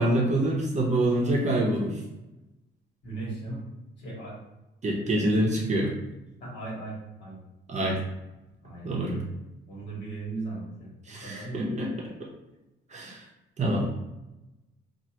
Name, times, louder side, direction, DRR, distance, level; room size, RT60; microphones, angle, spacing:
voice 1, 0.0-2.0 4.8-5.9 7.7-8.0 8.8-9.2 11.1-11.9 12.9-13.2 13.6-14.0, right 1 dB, 35° right, -2 dB, 0.7 m, -26 dB
voice 2, 3.0-3.7 4.0-4.4 5.0-5.4 6.4-7.4 8.6-9.3 9.7-10.9 11.2-12.0, right 2 dB, 65° left, -5 dB, 1.4 m, -38 dB
2.9 x 2.5 x 2.8 m, 1.0 s
cardioid pair, 90°, 20 cm